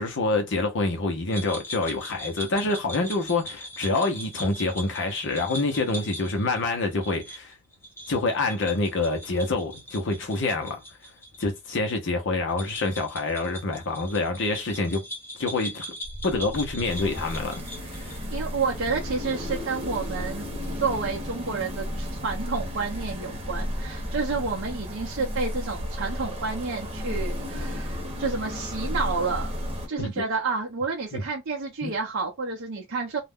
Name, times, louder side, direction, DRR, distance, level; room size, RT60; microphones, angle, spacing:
voice 1, 0.0-7.5 8.1-10.8 11.4-15.0 15.4-15.8 16.2-18.2 30.0-30.1 31.1-31.2 31.8-31.9, left 2 dB, 60° left, 0.7 m, -27 dB
sound 1, 1.3-11.5 11.7-11.8 12.5-18.2, equal, 10° left, 0.7 m, -40 dB
sound 2, 16.0-26.3, right 1 dB, 40° left, 0.9 m, -41 dB
sound 3, 16.8-29.9, left 1 dB, 25° right, 0.9 m, -34 dB
voice 2, 18.3-20.5 20.8-29.5 29.9-33.2, right 4 dB, 60° right, 0.6 m, -30 dB
2.4 x 2.1 x 3.5 m
head